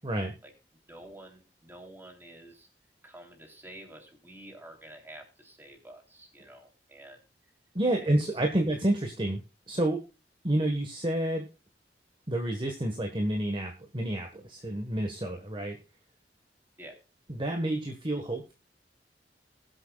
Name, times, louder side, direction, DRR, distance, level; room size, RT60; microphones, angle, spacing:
voice 1, 0.0-0.3 7.7-9.4 9.7-10.0 10.4-11.5 12.3-15.8 17.3-18.5, right 1 dB, 30° right, 3 dB, 1.4 m, -29 dB
voice 2, 0.9-2.7 3.0-7.2 8.0-8.7 16.8-16.9, right 1 dB, 15° right, 2 dB, 3.4 m, -49 dB
21.0 x 8.1 x 2.4 m, 0.31 s
head